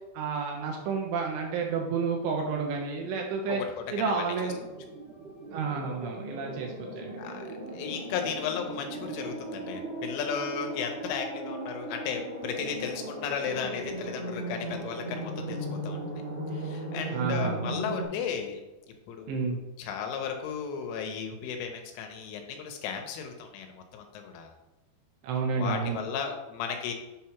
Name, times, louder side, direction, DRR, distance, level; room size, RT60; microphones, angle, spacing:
voice 1, 0.1-3.6 3.9-4.6 5.5-7.2 17.1-17.7 19.3-19.6 25.2-26.0, right 5 dB, 80° right, 1 dB, 2.7 m, -30 dB
voice 2, 3.5-3.8 7.2-7.4 7.7-16.0 16.5-18.6 19.1-24.5 25.6-26.9, left 7 dB, 90° left, 4 dB, 3.3 m, -35 dB
sound 1, 4.4-9.4, right 2 dB, 50° right, 0.7 m, -46 dB
sound 2, 5.5-18.0, right 1 dB, 45° left, 0.7 m, -37 dB
7.9 x 2.9 x 5.6 m, 1.1 s
omnidirectional pair, 5.5 m